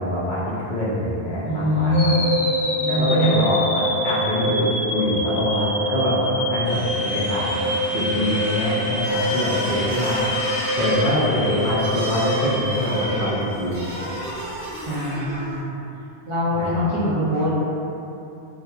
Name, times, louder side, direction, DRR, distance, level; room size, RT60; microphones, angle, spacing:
voice 1, 0.0-2.2 2.9-7.7 7.9-10.3 10.8-14.1 16.5-16.9, left 1 dB, 60° left, -8 dB, 0.6 m, -24 dB
voice 2, 1.5-2.3 2.8-3.4 14.8-15.7 16.3-17.5, left 1 dB, 50° right, -12 dB, 0.3 m, -23 dB
sound 1, 1.9-14.0, equal, 85° left, 1.0 m, -25 dB
sound 2, 6.6-11.7, right 1 dB, 70° right, 0.7 m, -34 dB
sound 3, 9.0-15.6, right 1 dB, 15° right, 0.7 m, -32 dB
2.7 x 2.2 x 2.3 m, 2.8 s
omnidirectional pair, 1.0 m